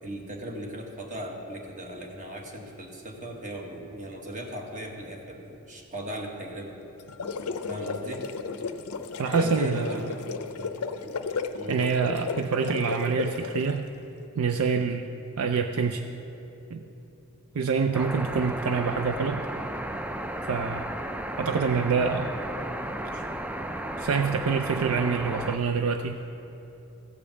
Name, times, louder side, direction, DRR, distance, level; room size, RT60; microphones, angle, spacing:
voice 1, 0.0-6.8 7.7-8.3 9.3-10.7 11.0-11.2 11.6-11.9, right 1 dB, 35° right, 1 dB, 1.3 m, -38 dB
sound 1, 7.0-13.8, left 5 dB, 80° left, 0.5 m, -33 dB
voice 2, 9.2-10.1 11.7-13.9 14.3-15.1 15.4-16.1 16.7-16.8 17.5-19.5 20.5-20.9 21.4-22.3 23.1-23.2 24.0-26.2, right 5 dB, 70° right, 6 dB, 0.4 m, -26 dB
sound 2, 17.9-25.6, right 1 dB, 5° right, 0.3 m, -34 dB
15.0 x 5.2 x 7.0 m, 3.0 s
head